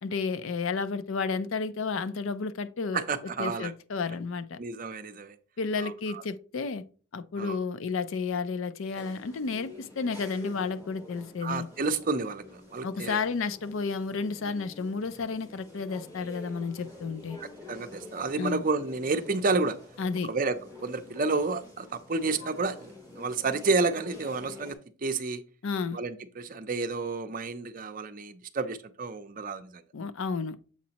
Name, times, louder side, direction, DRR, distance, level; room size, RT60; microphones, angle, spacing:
voice 1, 0.0-3.0 3.4-4.6 5.6-6.8 7.1-11.7 12.8-17.4 18.4-18.6 20.0-20.3 25.6-26.0 29.9-30.6, left 4 dB, 70° left, 0.5 m, -32 dB
voice 2, 2.9-3.7 4.6-5.4 5.8-6.2 7.4-7.6 11.4-13.2 17.4-19.8 20.2-20.6 20.8-25.4 25.9-29.8, right 3 dB, 40° right, 0.5 m, -30 dB
sound 1, 8.9-24.7, left 2 dB, 15° left, 2.0 m, -48 dB
7.2 x 5.1 x 2.9 m
head